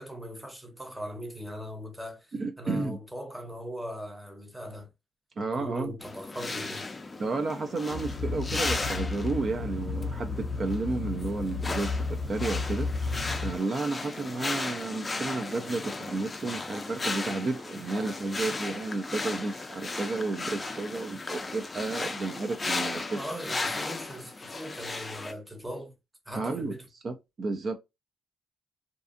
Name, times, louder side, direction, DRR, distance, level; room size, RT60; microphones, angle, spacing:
voice 1, 0.0-4.9 5.6-6.9 23.1-26.0 26.3-26.8, equal, 5° right, 0.8 m, -40 dB
voice 2, 2.3-3.0 5.4-5.9 7.2-23.2 26.4-26.8 27.0-27.7, right 3 dB, 45° right, 0.4 m, -32 dB
sound 1, 6.0-25.3, left 3 dB, 25° left, 0.4 m, -36 dB
sound 2, 7.9-13.6, left 4 dB, 85° left, 0.4 m, -33 dB
2.5 x 2.3 x 2.5 m
cardioid pair, 90°, 0 cm